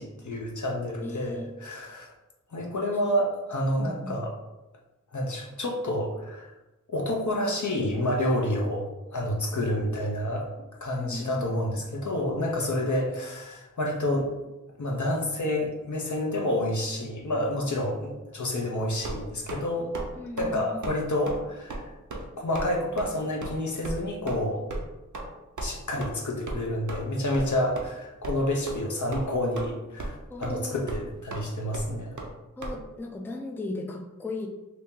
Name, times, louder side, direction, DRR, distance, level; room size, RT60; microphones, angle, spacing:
voice 1, 0.0-2.1 2.5-4.3 5.1-6.5 6.9-8.8 9.1-10.5 10.8-14.3 14.8-19.9 20.4-21.8 22.4-24.6 25.6-32.2, left 1 dB, 65° left, -1 dB, 0.7 m, -29 dB
voice 2, 1.0-1.5 3.8-4.1 11.0-11.5 20.2-20.9 30.3-30.9 32.6-34.5, left 2 dB, 5° left, 1 dB, 0.4 m, -37 dB
sound 1, 19.0-19.6 19.9-20.1 20.4-20.5 20.8-21.0 21.3-21.4 21.7-21.8 22.1-22.2 22.5-22.7 23.0-23.1 23.4-23.5 23.8-23.9 24.3-24.4 24.7-24.8 25.1-25.3 25.6-25.7 26.0-26.1 26.5-26.6 26.9-27.0 27.3-27.5 27.7-27.8 28.2-28.4 28.7-28.8 29.1-29.7 30.0-30.2 30.4-30.5 30.9-31.0 31.3-31.4 31.7-31.9 32.2-32.3 32.6-32.7, right 2 dB, 70° right, 0.6 m, -34 dB
2.9 x 2.8 x 3.7 m, 1.0 s
wide cardioid pair, 50°, 31 cm